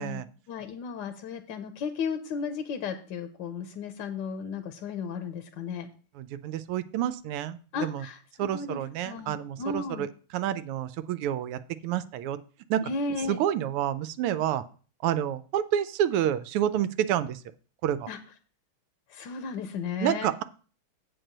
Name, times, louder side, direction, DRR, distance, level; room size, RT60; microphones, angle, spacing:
voice 1, 0.0-5.9 7.7-10.1 12.8-13.4 18.1-18.2 19.1-20.3, left 5 dB, 65° left, 7 dB, 1.2 m, -34 dB
voice 2, 6.2-8.0 8.4-10.1 10.3-12.4 12.7-12.8 13.3-14.6 15.0-17.4 17.8-18.1 20.0-20.4, right 11 dB, 85° right, 13 dB, 1.5 m, -29 dB
7.8 x 4.6 x 6.5 m, 0.38 s
omnidirectional pair, 2.4 m